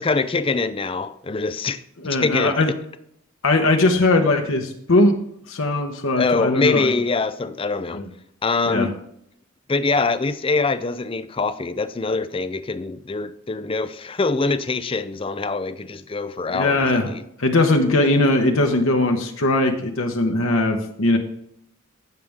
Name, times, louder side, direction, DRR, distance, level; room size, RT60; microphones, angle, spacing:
voice 1, 0.0-2.6 6.2-8.0 8.4-8.9 9.7-17.2, left 3 dB, 25° left, 0.5 m, -24 dB
voice 2, 2.0-2.7 3.4-5.2 5.5-6.9 7.9-8.1 8.7-8.9 16.5-17.1 17.4-21.2, left 2 dB, 70° left, 1.1 m, -19 dB
16.0 x 6.7 x 3.6 m
head